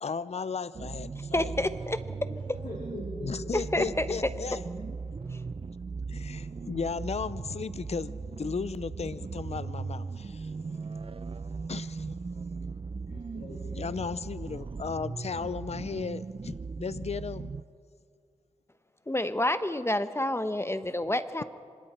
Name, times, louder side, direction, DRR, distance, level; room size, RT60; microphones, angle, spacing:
voice 1, 0.0-1.5 3.2-4.6 6.1-10.5 11.7-12.2 13.7-17.5, left 5 dB, 55° left, 0.6 m, -35 dB
sound 1, 0.7-17.6, right 4 dB, 45° right, 0.6 m, -38 dB
voice 2, 1.3-2.0 3.5-4.1 19.1-21.4, left 1 dB, 20° left, 1.0 m, -28 dB
voice 3, 2.6-4.2 13.1-13.6, left 2 dB, 85° left, 3.8 m, -43 dB
26.0 x 25.5 x 4.4 m
cardioid pair, 50°, 13 cm